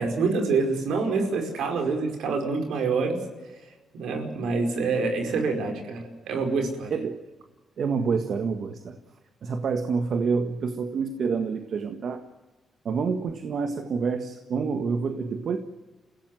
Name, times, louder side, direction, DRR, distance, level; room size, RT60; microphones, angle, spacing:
voice 1, 0.0-3.2 3.9-6.9, right 4 dB, 85° right, 4 dB, 5.0 m, -26 dB
voice 2, 6.9-7.2 7.8-9.0 9.4-12.3 12.8-15.6, right 5 dB, 65° right, 7 dB, 1.7 m, -27 dB
29.0 x 16.5 x 7.8 m, 1.2 s
cardioid pair, 80°, 0 cm